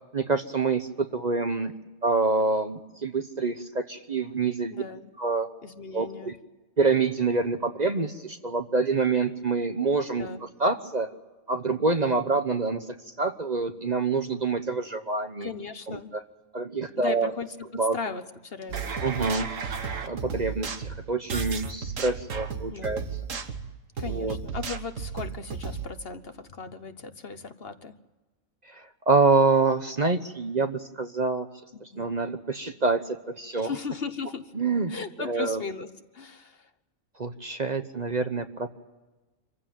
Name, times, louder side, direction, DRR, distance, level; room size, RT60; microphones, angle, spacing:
voice 1, 0.1-1.7 2.0-4.7 5.2-5.5 5.9-6.4 6.8-10.3 10.6-11.1 11.5-12.8 13.2-15.5 15.9-16.2 16.5-17.3 17.7-18.0 19.0-19.5 20.0-23.0 24.1-24.4 28.7-31.5 31.8-33.7 34.5-34.9 35.2-35.6 37.2-38.7, right 4 dB, 35° right, 8 dB, 1.0 m, -26 dB
voice 2, 4.7-5.1 5.6-6.3 10.2-10.4 15.4-16.1 17.0-17.5 17.9-19.0 22.7-23.0 24.0-27.9 31.9-32.1 33.6-34.5 34.9-35.9 36.1-36.7, left 5 dB, 50° left, 10 dB, 1.3 m, -37 dB
sound 1, 18.7-25.9, right 6 dB, 70° right, 1.8 m, -34 dB
26.0 x 15.5 x 9.0 m, 1.2 s
omnidirectional pair, 1.4 m